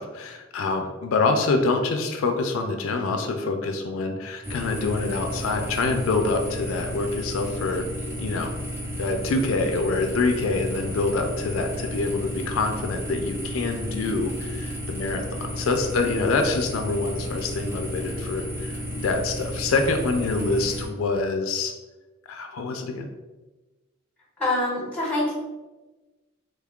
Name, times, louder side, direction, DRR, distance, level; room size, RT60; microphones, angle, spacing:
voice 1, 0.0-7.8 8.2-8.5 9.0-21.7 22.3-23.1, left 3 dB, 80° left, 5 dB, 0.4 m, -26 dB
sound 1, 4.4-20.9, equal, 10° right, 0.7 m, -33 dB
voice 2, 24.4-25.3, left 1 dB, 5° left, -5 dB, 1.0 m, -25 dB
3.2 x 2.3 x 3.5 m, 1.2 s
head